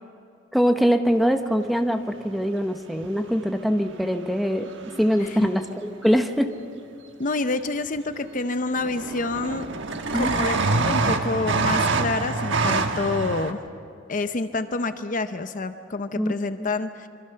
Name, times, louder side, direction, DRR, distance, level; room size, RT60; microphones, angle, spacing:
voice 1, 0.5-4.7 5.0-6.5 10.1-10.3 16.2-16.7, equal, ahead, 6 dB, 0.9 m, -23 dB
sound 1, 3.0-3.1 4.7-5.4 7.6-7.7 7.9-8.4 8.7-13.5, right 3 dB, 65° right, 1.3 m, -25 dB
voice 2, 7.2-9.7 10.1-13.6 14.1-17.1, left 3 dB, 40° left, 10 dB, 0.7 m, -28 dB
26.0 x 24.5 x 5.8 m, 2.4 s
head